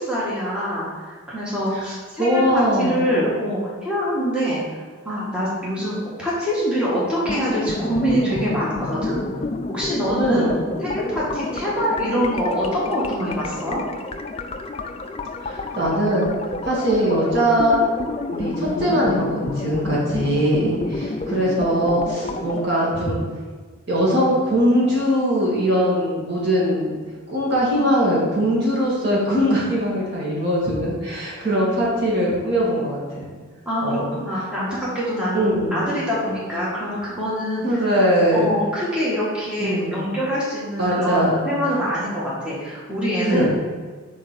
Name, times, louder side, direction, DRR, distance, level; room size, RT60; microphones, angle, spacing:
voice 1, 0.0-4.6 5.0-9.2 9.7-10.5 10.8-13.8 20.7-20.9 23.0-23.1 33.6-37.8 38.3-43.5, equal, 5° right, -8 dB, 1.4 m, -24 dB
voice 2, 2.2-3.1 10.1-10.6 15.4-16.3 16.6-17.8 18.3-23.2 23.9-27.0 27.3-33.3 33.8-34.1 35.3-35.8 37.6-38.5 39.6-40.0 40.8-41.4 43.2-43.5, equal, 50° right, -6 dB, 1.9 m, -21 dB
sound 1, 7.2-22.7, left 3 dB, 30° left, 0.3 m, -29 dB
4.9 x 4.5 x 5.8 m, 1.5 s
head